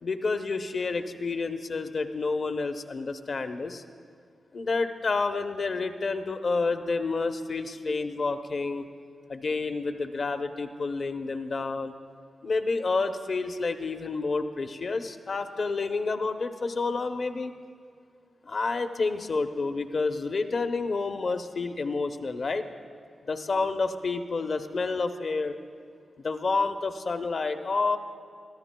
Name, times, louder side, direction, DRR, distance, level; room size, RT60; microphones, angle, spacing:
voice 1, 0.0-3.8 4.5-8.9 9.3-11.9 12.4-17.5 18.4-22.7 23.2-25.5 26.2-28.0, left 3 dB, 60° left, 8 dB, 0.7 m, -29 dB
24.5 x 13.5 x 2.2 m, 2.2 s
cardioid pair, 45°, 0 cm